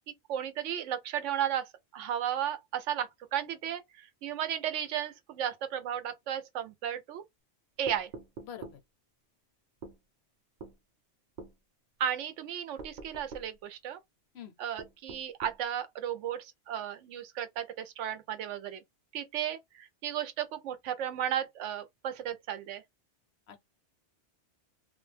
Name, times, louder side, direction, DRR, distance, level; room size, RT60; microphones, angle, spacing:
voice 1, 0.3-7.2 7.8-8.1 12.0-14.0 14.6-18.8 19.1-22.8, right 10 dB, 90° right, 0.9 m, -34 dB
sound 1, 7.9-8.8 9.8-10.0 10.6-10.8 11.4-11.6 12.8-13.5 14.8-15.6, right 4 dB, 50° right, 0.6 m, -45 dB
voice 2, 8.4-8.8 14.3-14.5 23.5-23.6, left 9 dB, 70° left, 0.8 m, -45 dB
2.4 x 2.1 x 3.1 m
omnidirectional pair, 1.2 m